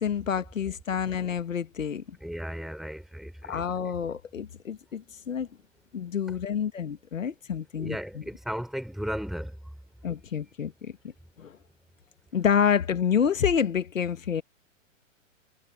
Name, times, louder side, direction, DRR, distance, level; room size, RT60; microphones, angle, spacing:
voice 1, 0.0-2.2 3.4-5.5 5.9-8.0 10.0-10.9 11.4-11.6 12.3-14.4, left 7 dB, 75° left, 1.6 m, -28 dB
voice 2, 2.2-3.9 6.3-6.4 7.8-9.6, equal, ahead, 5.4 m, -35 dB
figure-of-eight pair, 115°, 39 cm